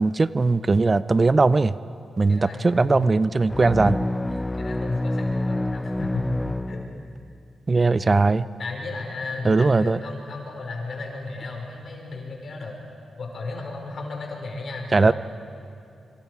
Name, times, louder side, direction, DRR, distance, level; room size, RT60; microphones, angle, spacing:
voice 1, 0.0-1.8 2.2-4.0 7.7-8.5 9.4-10.0 14.9-15.1, right 3 dB, 35° right, 16 dB, 0.5 m, -19 dB
voice 2, 2.3-3.1 3.9-4.1 4.4-6.9 8.6-12.8 13.2-15.1, left 3 dB, 65° left, 0 dB, 5.3 m, -34 dB
sound 1, 3.5-7.3, left 1 dB, 15° left, 0.4 m, -27 dB
26.5 x 25.5 x 4.8 m, 2.6 s
cardioid pair, 55°, 0 cm